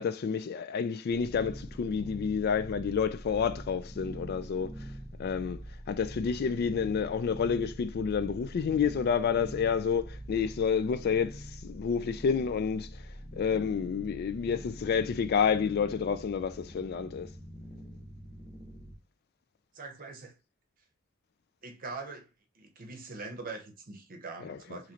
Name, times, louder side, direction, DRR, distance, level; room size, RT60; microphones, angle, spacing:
voice 1, 0.0-4.8 5.2-5.6 5.9-13.0 13.3-17.3 24.4-24.8, left 6 dB, 50° left, 0.3 m, -29 dB
sound 1, 1.1-19.0, equal, 5° left, 0.7 m, -44 dB
voice 2, 19.7-20.3 21.6-22.3 22.5-24.9, right 3 dB, 45° right, 0.8 m, -42 dB
3.1 x 3.0 x 3.7 m
head